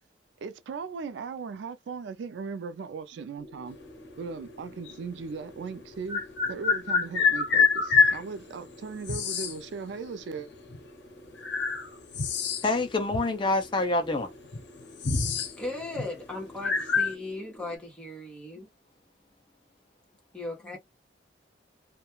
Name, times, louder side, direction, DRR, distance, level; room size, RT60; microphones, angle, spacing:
voice 1, 0.4-3.8 4.2-6.2 6.5-10.5, right 5 dB, 75° right, 0.3 m, -38 dB
sound 1, 3.4-17.8, left 1 dB, 40° left, 0.9 m, -50 dB
sound 2, 4.9-5.0 6.1-8.2 9.0-9.6 10.7-10.8 11.4-12.8 13.1-13.2 14.1-14.2 14.4-15.5 15.8-16.1 16.6-17.1, left 5 dB, 70° left, 0.6 m, -25 dB
voice 2, 12.6-14.3, left 2 dB, 25° left, 0.4 m, -26 dB
voice 3, 15.6-18.7 20.3-20.8, left 2 dB, 5° left, 0.9 m, -37 dB
2.3 x 2.1 x 2.9 m
head